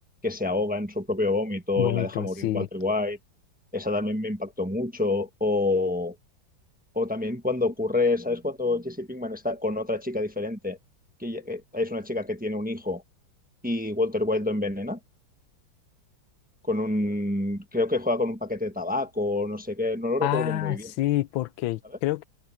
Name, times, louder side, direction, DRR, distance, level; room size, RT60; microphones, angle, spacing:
voice 1, 0.2-3.2 3.7-6.1 6.9-10.8 11.2-13.0 13.6-15.0 16.7-20.9, left 2 dB, 5° right, 1.1 m, -27 dB
voice 2, 1.8-2.7 20.2-22.2, left 16 dB, 85° left, 1.4 m, -27 dB
omnidirectional pair, 2.1 m